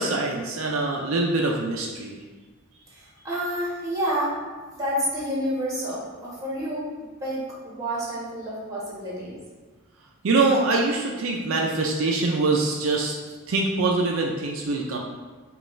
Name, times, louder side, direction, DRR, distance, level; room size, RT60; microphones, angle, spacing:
voice 1, 0.0-2.2 10.2-13.1 13.5-15.0, right 3 dB, 70° right, 0 dB, 0.4 m, -24 dB
voice 2, 2.9-4.4 4.8-6.9 7.2-9.4, equal, 15° right, -7 dB, 1.3 m, -29 dB
5.2 x 2.4 x 3.1 m, 1.4 s
head